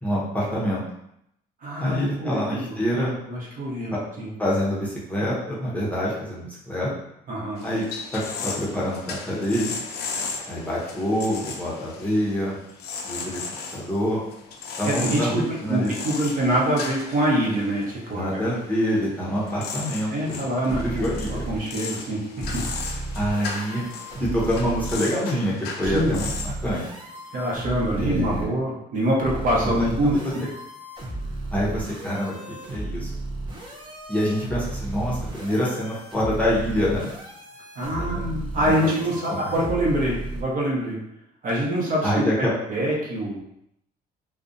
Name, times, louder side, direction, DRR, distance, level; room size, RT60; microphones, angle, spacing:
voice 1, 0.0-0.8 1.8-3.2 4.4-6.9 7.6-7.8 8.1-9.8 10.5-12.6 13.0-13.4 13.7-14.2 14.8-15.9 18.1-20.4 20.6-21.4 23.1-23.9 24.2-26.3 26.6-26.8 28.0-28.5 29.6-30.2 31.5-33.1 34.1-37.1 38.0-38.3 38.6-38.9 39.3-39.5 42.0-42.5, equal, 10° left, -6 dB, 0.7 m, -26 dB
voice 2, 1.6-2.8 3.3-4.3 7.3-7.6 14.8-18.5 20.1-22.6 25.8-26.1 27.3-30.1 37.8-41.0 41.4-43.4, right 1 dB, 55° right, -4 dB, 0.8 m, -25 dB
sound 1, 7.6-26.5, left 5 dB, 70° left, 0.4 m, -36 dB
sound 2, 20.7-21.6 22.4-25.0 25.8-28.5 29.3-40.4, right 2 dB, 30° right, 0.5 m, -34 dB
2.4 x 2.1 x 2.5 m, 0.78 s
cardioid pair, 110°, 17 cm